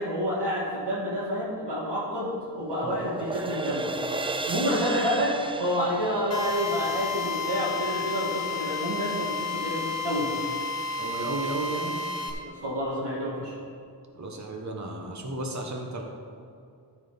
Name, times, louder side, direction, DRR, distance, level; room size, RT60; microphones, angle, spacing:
voice 1, 0.0-3.9 4.5-10.3 12.6-13.5, equal, 80° right, -8 dB, 2.3 m, -29 dB
sound 1, 1.7-8.1, right 3 dB, 15° right, 0.4 m, -35 dB
Drill, 6.3-12.3, left 4 dB, 40° left, 1.6 m, -31 dB
voice 2, 11.0-12.0 14.1-16.0, right 2 dB, 40° right, 2 dB, 1.2 m, -33 dB
14.0 x 5.0 x 5.3 m, 2.3 s
wide cardioid pair, 125°, 41 cm